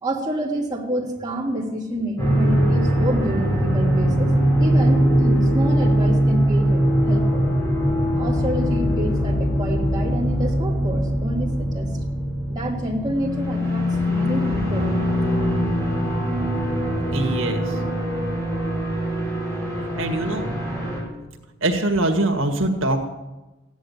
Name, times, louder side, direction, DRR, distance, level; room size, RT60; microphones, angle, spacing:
voice 1, 0.0-4.3 4.6-7.4 8.2-11.9 12.5-15.0, equal, 20° right, -3 dB, 3.1 m, -28 dB
sound 1, 2.2-21.0, equal, 15° left, 4.7 m, -21 dB
voice 2, 17.1-17.8 20.0-20.5 21.6-23.0, right 1 dB, 85° right, 3 dB, 1.9 m, -23 dB
15.5 x 10.5 x 8.3 m, 1.1 s
head